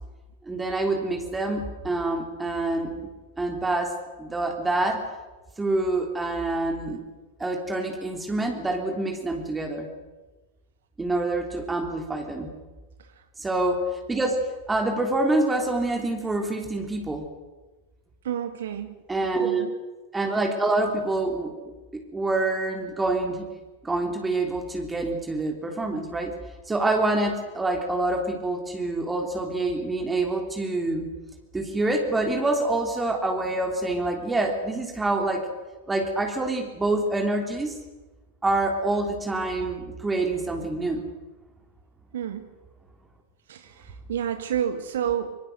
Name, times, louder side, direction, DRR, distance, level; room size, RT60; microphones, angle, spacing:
voice 1, 0.5-2.9 3.4-5.0 5.6-7.0 7.4-9.9 11.0-12.5 13.4-17.2 19.1-19.7 20.1-21.6 21.9-23.5 23.8-26.3 26.7-31.1 31.5-35.5 35.9-37.8 38.4-41.0, right 2 dB, 10° right, 3 dB, 3.2 m, -26 dB
voice 2, 18.2-18.9 19.4-19.7 42.1-42.5 43.5-45.4, right 9 dB, 60° right, 9 dB, 1.5 m, -30 dB
25.5 x 25.0 x 6.7 m, 1.2 s
figure-of-eight pair, 90°, 0 cm